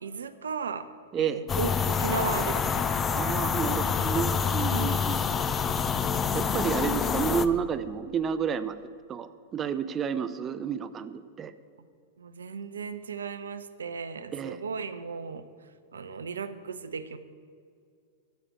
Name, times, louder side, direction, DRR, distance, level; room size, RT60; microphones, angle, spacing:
voice 1, 0.0-0.9 1.2-2.9 4.7-5.0 12.2-15.4 15.9-17.2, right 5 dB, 75° right, 12 dB, 0.6 m, -35 dB
voice 2, 1.1-1.5 3.2-5.2 6.3-8.8 9.1-11.5 14.3-14.6, right 7 dB, 25° right, 12 dB, 0.5 m, -30 dB
sound 1, 1.5-7.5, left 6 dB, 25° left, 0.6 m, -27 dB
13.5 x 5.0 x 8.4 m, 2.3 s
figure-of-eight pair, 95°, 0 cm